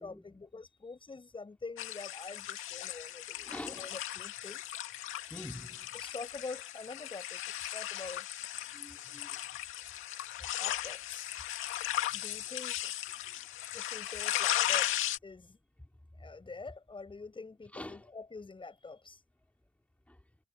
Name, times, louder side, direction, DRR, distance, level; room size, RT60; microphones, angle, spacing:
voice 1, 0.0-4.6 5.9-8.3 10.6-11.4 12.1-12.9 13.7-15.6 16.2-19.2, left 3 dB, 25° left, 8.0 m, -46 dB
sound 1, 1.8-15.2, left 13 dB, 85° left, 2.1 m, -36 dB
voice 2, 3.5-3.9 5.3-5.9 8.7-9.3 17.7-18.0 20.1-20.2, left 1 dB, 5° left, 3.6 m, -45 dB
cardioid pair, 90°, 20 cm